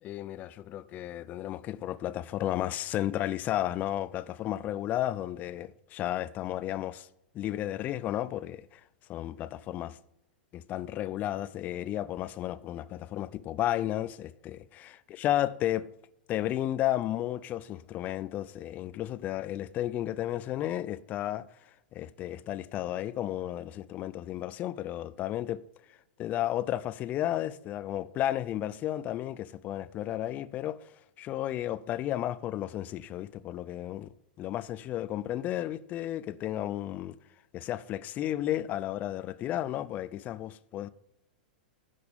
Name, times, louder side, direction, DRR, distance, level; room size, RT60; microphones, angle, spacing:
voice 1, 0.0-7.1 7.3-8.8 9.1-10.0 10.5-15.9 16.3-25.6 25.9-34.1 34.4-37.2 37.5-40.9, left 13 dB, 30° left, 0.5 m, -33 dB
16.0 x 5.7 x 3.6 m
figure-of-eight pair, 100°, 5 cm